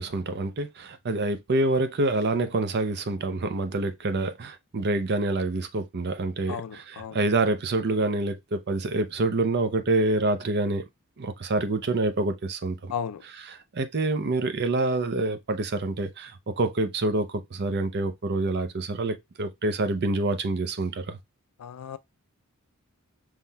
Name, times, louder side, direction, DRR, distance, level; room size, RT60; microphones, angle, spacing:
voice 1, 0.0-10.8 11.2-12.9 13.5-21.2, right 2 dB, 50° right, 0.6 m, -27 dB
voice 2, 6.5-7.2 12.9-13.2 21.6-22.0, left 7 dB, 85° left, 0.4 m, -34 dB
5.5 x 3.1 x 2.2 m
head